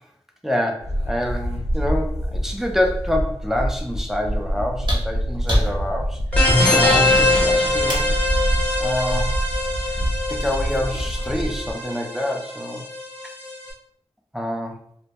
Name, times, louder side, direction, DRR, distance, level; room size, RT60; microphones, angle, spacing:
voice 1, 0.4-6.2 6.7-8.1 8.8-9.3 10.3-12.8 14.3-14.8, left 1 dB, 5° right, 2 dB, 0.5 m, -26 dB
sound 1, 0.8-11.7, equal, 75° left, 0.4 m, -26 dB
sound 2, 4.8-8.2 9.6-9.7, equal, 45° right, 0.7 m, -29 dB
sound 3, 6.3-13.6, left 2 dB, 15° left, 0.9 m, -22 dB
2.1 x 2.1 x 2.8 m, 0.66 s
cardioid pair, 40°, 11 cm